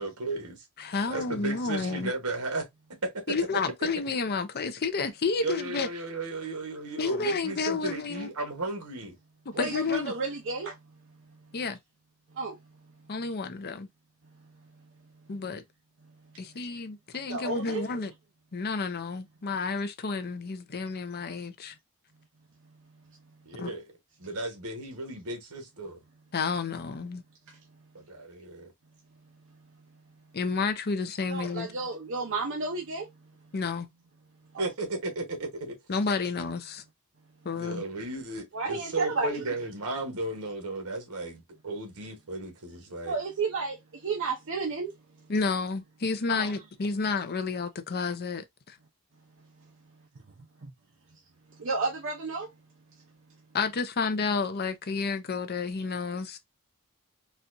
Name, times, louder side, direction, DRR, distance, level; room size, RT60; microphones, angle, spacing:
voice 1, 0.0-0.7 1.1-2.7 3.0-3.3 5.4-9.1 23.4-23.8 24.2-26.0 27.9-28.7 34.6-35.8 36.4-36.5 37.5-43.2, right 2 dB, 80° right, 1.3 m, -35 dB
voice 2, 0.8-2.1 3.3-5.9 7.0-8.3 9.6-10.1 11.5-11.8 13.1-13.9 15.3-15.6 16.4-18.1 18.5-21.8 23.6-23.7 26.3-27.2 30.3-31.7 33.5-33.9 35.9-36.8 37.4-37.8 45.3-48.8 53.5-56.4, left 4 dB, 45° left, 0.6 m, -30 dB
voice 3, 9.5-10.8 12.3-12.6 17.3-18.1 27.5-27.6 31.3-33.1 34.5-34.7 38.5-39.5 43.1-44.9 46.3-46.5 50.6-50.7 51.6-52.5, right 3 dB, 60° right, 0.7 m, -32 dB
4.2 x 2.4 x 2.6 m
head